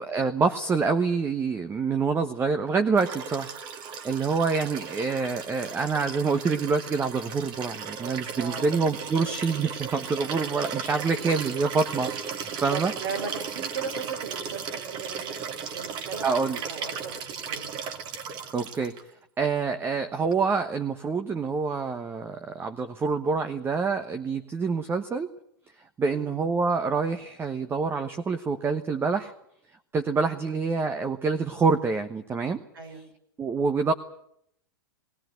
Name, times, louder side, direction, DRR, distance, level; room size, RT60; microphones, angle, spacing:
voice 1, 0.0-3.5 4.0-12.9 16.2-16.6 18.5-18.9 19.4-25.3 26.0-29.3 29.9-32.6 33.4-33.9, right 4 dB, 20° right, 9 dB, 1.2 m, -26 dB
Liquid, 3.0-19.0 20.3-20.4, right 6 dB, 40° right, 2.5 m, -36 dB
voice 2, 8.4-8.8 12.7-15.4 15.7-17.8 26.0-26.4 30.3-30.6 32.7-33.0, right 5 dB, 75° right, 3 dB, 5.8 m, -37 dB
20.5 x 18.0 x 9.4 m, 0.73 s
hypercardioid pair, 100°, 12 cm